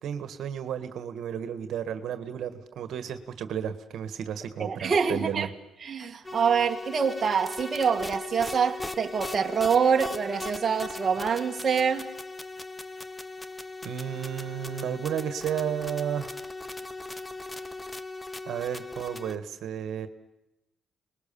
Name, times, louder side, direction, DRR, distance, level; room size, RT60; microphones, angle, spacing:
voice 1, 0.0-5.5 13.8-16.4 18.5-20.1, right 9 dB, 70° right, 1.8 m, -33 dB
voice 2, 4.6-5.5 5.8-12.1, right 6 dB, 40° right, 2.0 m, -25 dB
sound 1, 6.2-19.4, left 2 dB, 15° left, 1.2 m, -38 dB
28.0 x 21.0 x 7.2 m
cardioid pair, 90°, 0 cm